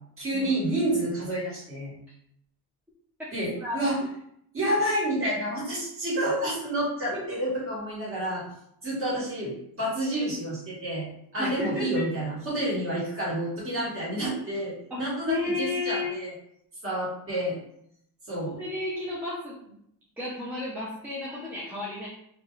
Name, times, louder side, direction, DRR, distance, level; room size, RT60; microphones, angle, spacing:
voice 1, 0.2-1.9 3.3-4.0 4.5-8.5 8.8-11.0 11.3-16.3 16.8-17.6 18.3-18.6, right 1 dB, 35° right, -7 dB, 1.5 m, -29 dB
voice 2, 3.2-3.9 7.1-7.2 11.4-12.1 14.9-16.2 18.5-19.7 20.2-22.1, left 3 dB, 5° right, -7 dB, 0.5 m, -33 dB
2.7 x 2.4 x 3.0 m, 0.72 s
cardioid pair, 145°, 40 cm